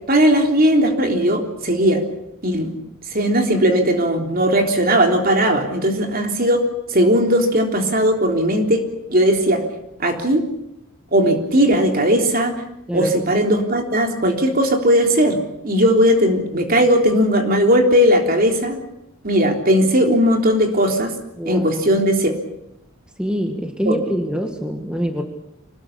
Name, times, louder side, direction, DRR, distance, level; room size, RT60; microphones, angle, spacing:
voice 1, 0.1-2.0 2.4-2.7 3.1-6.6 6.9-8.8 9.1-9.6 10.0-10.4 11.1-12.5 12.9-18.8 19.2-21.2 21.5-22.3 23.9-24.0, equal, 45° right, 4 dB, 3.6 m, -17 dB
voice 2, 21.4-21.8 23.2-25.2, equal, 5° right, 4 dB, 1.7 m, -25 dB
25.5 x 19.5 x 8.5 m, 0.80 s
head